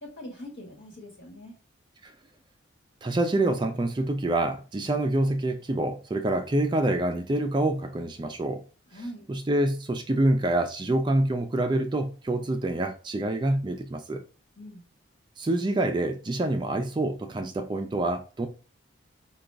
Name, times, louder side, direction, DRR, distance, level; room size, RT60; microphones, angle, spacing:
voice 1, 0.0-1.5 8.9-9.3 14.6-14.8, equal, 60° left, 1.7 m, -42 dB
voice 2, 3.0-8.6 9.3-14.2 15.4-18.5, right 1 dB, 25° right, 0.3 m, -26 dB
5.0 x 2.3 x 3.4 m
head